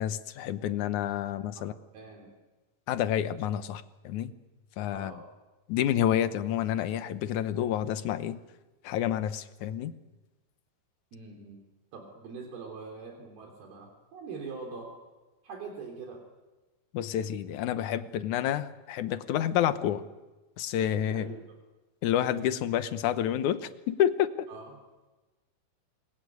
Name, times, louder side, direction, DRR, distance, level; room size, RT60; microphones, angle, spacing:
voice 1, 0.0-1.7 2.9-4.3 4.8-5.1 5.7-8.4 8.8-9.9 16.9-20.0 20.6-21.3 22.0-24.5, left 10 dB, 70° left, 11 dB, 2.0 m, -29 dB
voice 2, 1.3-2.3 4.9-5.2 11.1-11.6 11.9-14.9 15.4-16.2 21.1-21.5 24.5-24.7, right 4 dB, 75° right, 1 dB, 5.3 m, -43 dB
28.0 x 21.5 x 9.5 m, 1.1 s
omnidirectional pair, 4.4 m